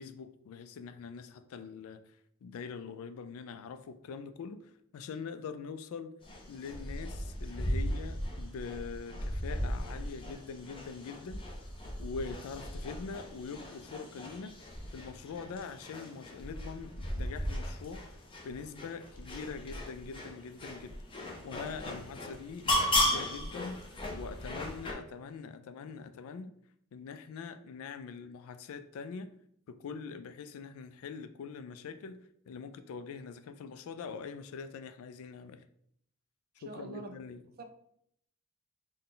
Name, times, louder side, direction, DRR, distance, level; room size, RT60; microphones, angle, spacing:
voice 1, 0.0-6.2 6.5-11.4 12.0-14.6 14.9-21.0 21.4-23.8 24.1-26.5 26.9-29.3 29.7-32.2 32.5-35.6 36.6-37.4, left 5 dB, 70° left, 0.3 m, -43 dB
sound 1, 6.2-24.9, left 1 dB, 25° left, 0.6 m, -36 dB
voice 2, 36.7-37.1 37.6-37.7, right 2 dB, 45° right, 0.5 m, -43 dB
3.8 x 2.2 x 3.8 m
head